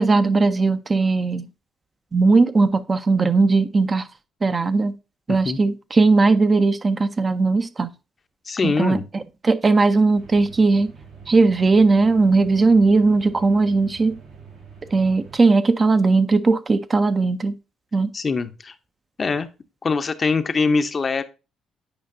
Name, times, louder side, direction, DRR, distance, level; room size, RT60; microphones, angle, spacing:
voice 1, 0.0-1.5 2.1-4.1 4.4-4.9 5.3-7.9 8.6-10.9 11.3-14.2 14.9-17.5 17.9-18.1, right 3 dB, 30° right, 0.5 m, -18 dB
voice 2, 5.3-5.6 8.5-9.1 18.1-18.7 19.2-19.5 19.8-21.2, left 4 dB, 35° left, 0.6 m, -23 dB
sound 1, 10.1-15.4, right 5 dB, 90° right, 3.5 m, -45 dB
8.7 x 5.1 x 2.6 m
cardioid pair, 90°, 0 cm